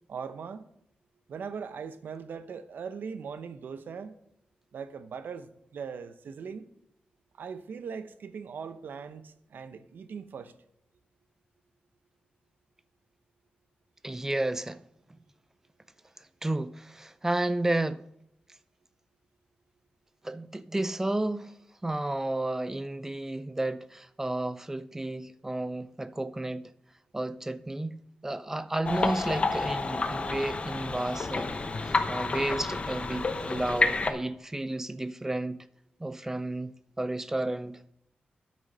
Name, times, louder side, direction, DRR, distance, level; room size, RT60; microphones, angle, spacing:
voice 1, 0.1-0.6 1.3-4.2 4.7-6.7 7.4-10.5, right 6 dB, 80° right, 0.7 m, -40 dB
voice 2, 14.0-14.8 16.4-18.0 20.2-21.5 21.8-26.7 27.1-28.0 28.2-31.5 32.1-35.7 36.0-36.7 37.0-37.9, right 2 dB, 15° right, 0.4 m, -32 dB
sound 1, 28.8-34.1, left 3 dB, 40° left, 0.8 m, -29 dB
9.1 x 6.2 x 5.5 m
wide cardioid pair, 125°, 3 cm